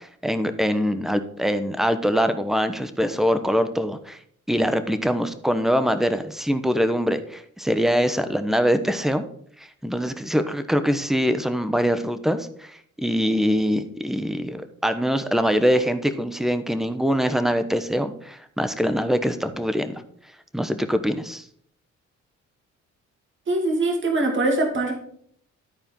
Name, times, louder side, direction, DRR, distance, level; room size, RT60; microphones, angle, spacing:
voice 1, 0.0-4.2 4.5-9.2 9.6-20.0 20.5-21.4, equal, ahead, 10 dB, 1.0 m, -23 dB
voice 2, 23.5-25.0, right 2 dB, 40° right, 1 dB, 2.6 m, -22 dB
12.5 x 4.5 x 5.3 m, 0.64 s
cardioid pair, 90°, 30 cm